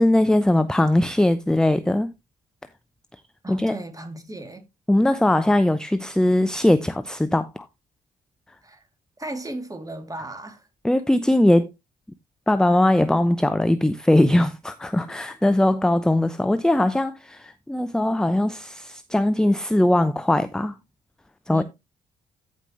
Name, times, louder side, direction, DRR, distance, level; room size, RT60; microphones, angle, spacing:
voice 1, 0.0-2.1 3.5-3.7 4.9-7.7 10.8-11.7 12.5-20.8 21.5-21.6, left 1 dB, 5° left, 0.7 m, -20 dB
voice 2, 3.4-4.7 8.6-8.9 9.2-10.7 21.5-21.6, right 2 dB, 20° right, 2.9 m, -35 dB
14.0 x 5.3 x 3.2 m
figure-of-eight pair, 40°, 19 cm